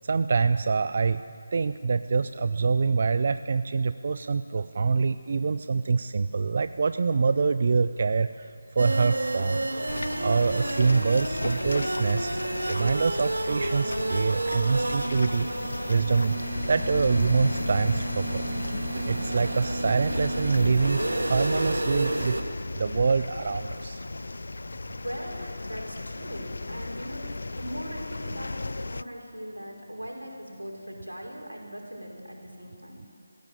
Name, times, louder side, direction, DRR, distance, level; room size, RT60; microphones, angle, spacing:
voice 1, 0.0-1.2 1.5-9.7 10.2-12.4 12.6-15.5 15.9-16.4 16.7-18.4 19.1-22.4 22.8-24.0, right 4 dB, 45° right, 12 dB, 0.5 m, -25 dB
sound 1, 8.8-22.4, right 2 dB, 65° right, 2.1 m, -31 dB
sound 2, 9.9-29.0, left 2 dB, 60° left, 0.5 m, -35 dB
voice 2, 25.0-33.1, equal, 90° right, 0 dB, 5.0 m, -40 dB
20.5 x 15.5 x 9.1 m, 2.3 s
figure-of-eight pair, 155°, 0 cm